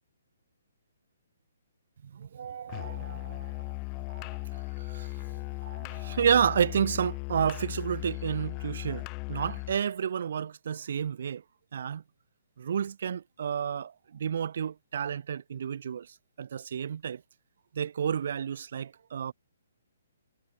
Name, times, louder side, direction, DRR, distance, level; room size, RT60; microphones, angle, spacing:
voice 1, 2.1-4.4 4.8-11.4 11.7-12.0 12.6-16.1 16.4-17.2 17.7-19.3, right 8 dB, 60° right, 5.2 m, -31 dB
Musical instrument, 2.7-9.8, left 33 dB, 30° left, 1.5 m, -37 dB
hypercardioid pair, 145°, 0 cm